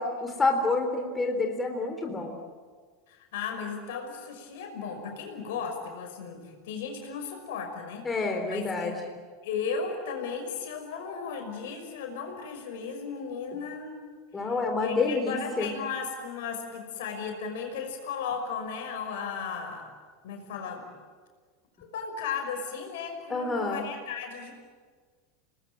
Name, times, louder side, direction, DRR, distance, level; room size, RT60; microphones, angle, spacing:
voice 1, 0.0-2.4 8.1-8.9 14.3-15.7 23.3-23.8, left 3 dB, 20° left, 3 dB, 3.7 m, -28 dB
voice 2, 3.1-8.0 8.5-8.9 9.4-14.0 14.4-14.5 14.8-19.8 20.2-20.9 21.8-24.6, left 6 dB, 65° left, 4 dB, 5.7 m, -35 dB
29.5 x 20.0 x 9.0 m, 1.6 s
figure-of-eight pair, 80°, 0 cm